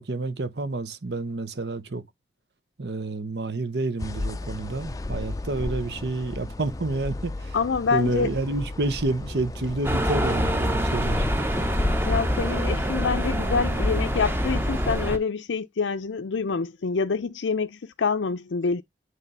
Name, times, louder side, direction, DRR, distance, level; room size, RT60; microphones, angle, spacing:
voice 1, 0.0-2.0 2.8-7.6 7.9-11.2, right 2 dB, 65° right, 0.9 m, -29 dB
sound 1, 4.0-15.1, left 2 dB, 20° left, 0.4 m, -32 dB
voice 2, 7.5-8.3 12.1-18.8, left 5 dB, 85° left, 0.5 m, -26 dB
sound 2, 9.8-15.2, equal, 10° right, 0.9 m, -26 dB
8.2 x 3.2 x 5.5 m
head